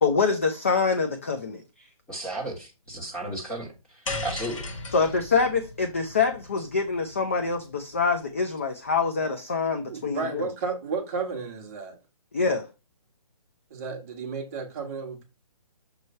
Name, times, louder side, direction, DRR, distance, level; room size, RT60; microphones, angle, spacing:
voice 1, 0.0-1.6 4.9-10.5 12.3-12.7, left 4 dB, 20° left, 0.3 m, -25 dB
voice 2, 2.1-4.7, right 1 dB, 5° left, 1.4 m, -34 dB
sound 1, 4.1-8.4, left 2 dB, 55° left, 1.8 m, -38 dB
voice 3, 9.8-12.0 13.7-15.2, right 4 dB, 25° right, 1.0 m, -33 dB
6.6 x 3.1 x 5.3 m
hypercardioid pair, 165°, 20 cm